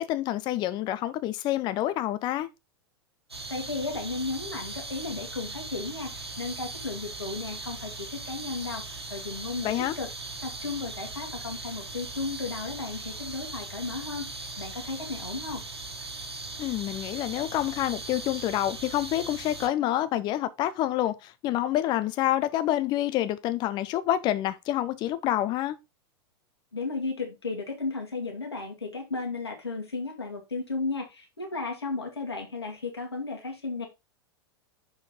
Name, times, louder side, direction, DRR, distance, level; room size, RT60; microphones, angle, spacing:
voice 1, 0.0-2.5 9.6-10.0 16.6-25.8, left 13 dB, 35° left, 0.7 m, -27 dB
sound 1, 3.3-19.7, right 3 dB, 90° right, 1.5 m, -39 dB
voice 2, 3.5-10.1 10.4-15.6 26.7-33.9, left 3 dB, 85° left, 2.2 m, -34 dB
6.5 x 4.8 x 3.8 m
figure-of-eight pair, 95°, 13 cm